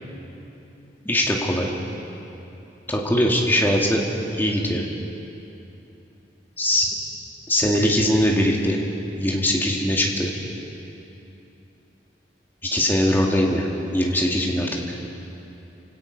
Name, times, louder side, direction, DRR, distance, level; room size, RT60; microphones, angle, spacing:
voice 1, 1.1-1.7 2.9-4.0 4.3-4.8 6.6-6.9 7.5-8.8 9.2-10.3 12.7-13.7 13.9-14.7, left 1 dB, 10° left, -1 dB, 2.2 m, -21 dB
29.0 x 17.5 x 5.4 m, 2.9 s
head